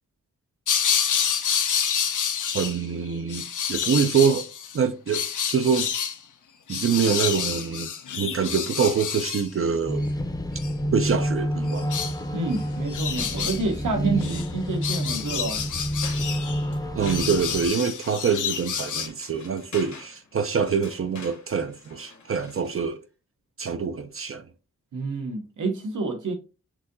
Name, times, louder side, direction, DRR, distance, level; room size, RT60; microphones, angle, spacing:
sound 1, 0.7-2.9 3.2-4.8 5.1-6.2 6.7-9.5 10.6-10.7 11.7-12.1 12.5-12.6 12.9-13.6 14.2-14.5 14.8-16.6 17.0-19.1, left 8 dB, 85° left, 0.7 m, -28 dB
voice 1, 2.5-4.5 4.7-5.9 6.7-7.9 8.2-10.1 10.9-11.9 14.0-14.4 16.9-23.0 23.6-24.4, right 6 dB, 45° right, 0.4 m, -25 dB
sound 2, 9.9-17.7, equal, 15° left, 0.6 m, -29 dB
voice 2, 12.3-15.6 24.9-26.3, right 3 dB, 80° right, 1.0 m, -28 dB
sound 3, 14.8-22.9, left 4 dB, 65° left, 1.1 m, -47 dB
6.0 x 2.8 x 2.6 m
wide cardioid pair, 125°, 30 cm